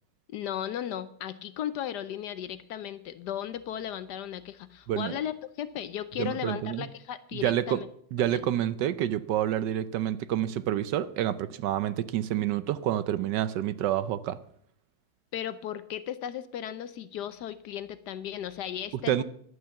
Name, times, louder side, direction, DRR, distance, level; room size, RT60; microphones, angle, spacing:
voice 1, 0.3-7.9 8.2-8.5 15.3-19.2, left 10 dB, 70° left, 13 dB, 1.1 m, -36 dB
voice 2, 6.2-6.9 7.3-7.8 8.1-14.4 19.1-19.2, right 11 dB, 75° right, 15 dB, 1.2 m, -28 dB
11.5 x 8.8 x 6.9 m, 0.65 s
omnidirectional pair, 2.1 m